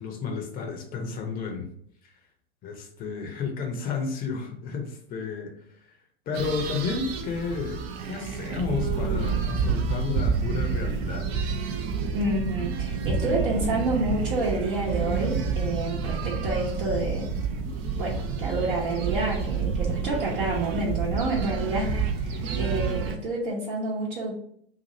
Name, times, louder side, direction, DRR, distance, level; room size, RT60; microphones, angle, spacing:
voice 1, 0.0-1.7 2.0-2.1 2.6-6.0 6.3-11.3, left 5 dB, 30° left, 4 dB, 0.7 m, -32 dB
sound 1, 6.3-23.2, right 5 dB, 35° right, 0.5 m, -29 dB
voice 2, 12.1-17.3 18.0-24.3, right 2 dB, 55° right, -5 dB, 0.9 m, -29 dB
2.7 x 2.6 x 4.1 m, 0.66 s
figure-of-eight pair, 95°, 31 cm